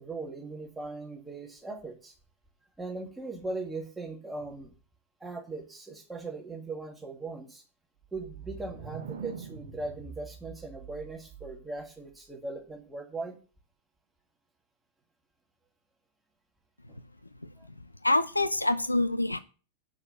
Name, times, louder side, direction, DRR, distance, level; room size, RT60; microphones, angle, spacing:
voice 1, 0.0-2.1 2.8-4.7 5.2-7.6 8.1-13.4 16.9-17.0 17.6-17.7, right 3 dB, 10° right, 2 dB, 2.0 m, -39 dB
sound 1, 8.0-11.8, right 6 dB, 65° right, 1.1 m, -44 dB
voice 2, 18.0-19.4, left 2 dB, 85° left, 13 dB, 0.5 m, -26 dB
6.4 x 5.5 x 7.1 m, 0.37 s
figure-of-eight pair, 90°, 0 cm